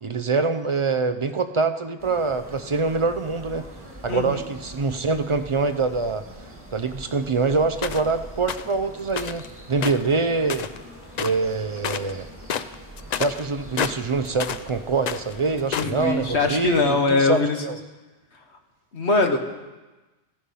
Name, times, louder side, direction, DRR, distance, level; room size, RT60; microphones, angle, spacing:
voice 1, 0.0-3.6 4.0-6.2 6.7-10.7 11.2-12.3 13.1-17.8, right 4 dB, 40° right, 9 dB, 0.4 m, -25 dB
sound 1, 2.0-16.9, right 1 dB, 10° right, 2.2 m, -43 dB
voice 2, 4.1-4.4 15.7-17.6 18.9-19.4, left 3 dB, 75° left, 5 dB, 1.5 m, -22 dB
sound 2, 7.8-8.1 8.5-8.7 9.1-9.5 9.8-10.9 11.1-11.5 11.8-12.1 12.4-14.7 15.0-16.0, left 8 dB, 55° left, 0.5 m, -29 dB
15.0 x 10.5 x 5.5 m, 1.2 s
omnidirectional pair, 1.1 m